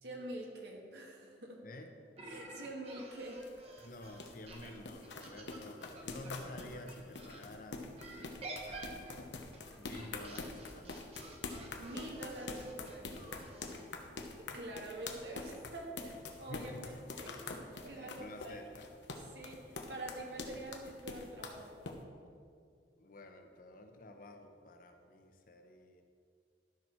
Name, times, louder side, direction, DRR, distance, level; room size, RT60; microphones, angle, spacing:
voice 1, 0.0-1.6 2.2-3.4 11.8-13.2 14.5-16.7 17.2-18.6 19.3-21.8, right 1 dB, 70° right, 0 dB, 1.5 m, -46 dB
voice 2, 1.6-2.0 3.8-7.9 8.2-8.3 8.6-9.3 9.6-11.1 13.7-14.0 16.5-17.1 17.8-18.9 23.0-26.0, left 1 dB, 50° left, 5 dB, 0.9 m, -51 dB
sound 1, 2.2-7.4 8.0-13.8, right 2 dB, 35° right, 1.2 m, -51 dB
sound 2, 2.9-22.0, left 3 dB, 85° left, 0.9 m, -45 dB
12.5 x 6.0 x 4.5 m, 2.2 s
head